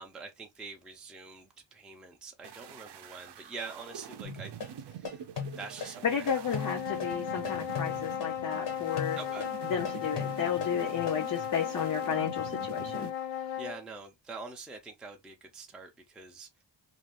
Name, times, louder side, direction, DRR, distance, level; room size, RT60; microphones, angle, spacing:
voice 1, 0.0-4.5 4.8-5.2 5.6-6.8 9.1-9.5 13.6-16.5, right 4 dB, ahead, 0.4 m, -45 dB
sound 1, 2.4-13.1, right 10 dB, 65° right, 0.5 m, -46 dB
sound 2, 4.2-11.2, left 6 dB, 65° left, 1.3 m, -38 dB
voice 2, 6.0-9.2 9.7-13.1, left 7 dB, 45° left, 0.5 m, -32 dB
sound 3, 6.4-13.8, left 10 dB, 80° left, 0.6 m, -36 dB
2.5 x 2.3 x 3.4 m
wide cardioid pair, 175°, 44 cm